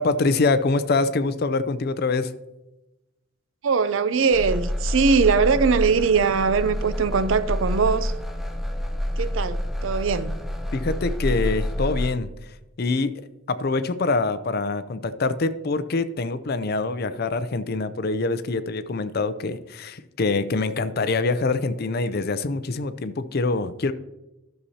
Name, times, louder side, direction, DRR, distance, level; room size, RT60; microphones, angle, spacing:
voice 1, 0.0-2.3 10.7-12.3 12.8-13.1 13.5-23.9, left 3 dB, 50° left, 0.5 m, -24 dB
voice 2, 3.6-8.1 9.2-10.3, right 5 dB, 75° right, 0.5 m, -21 dB
sound 1, 4.3-12.1, equal, ahead, 0.6 m, -28 dB
12.5 x 6.7 x 2.8 m
head